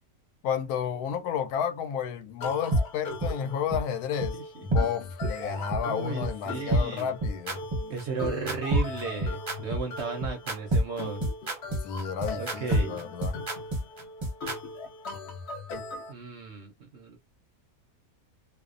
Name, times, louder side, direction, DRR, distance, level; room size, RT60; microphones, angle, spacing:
voice 1, 0.4-7.6 11.8-13.4, left 8 dB, 80° left, 1.1 m, -31 dB
sound 1, 2.4-16.1, left 3 dB, 65° left, 0.7 m, -40 dB
sound 2, 2.7-2.8 3.2-3.3 3.7-3.8 4.2-4.3 4.7-4.8 5.2-5.3 5.7-5.8 6.2-6.3 6.7-14.6, right 1 dB, 35° right, 0.5 m, -26 dB
voice 2, 4.3-4.6 5.2-7.1 7.9-11.2 12.4-13.0 16.1-17.2, right 5 dB, 65° right, 0.7 m, -35 dB
2.6 x 2.0 x 2.4 m
omnidirectional pair, 1.6 m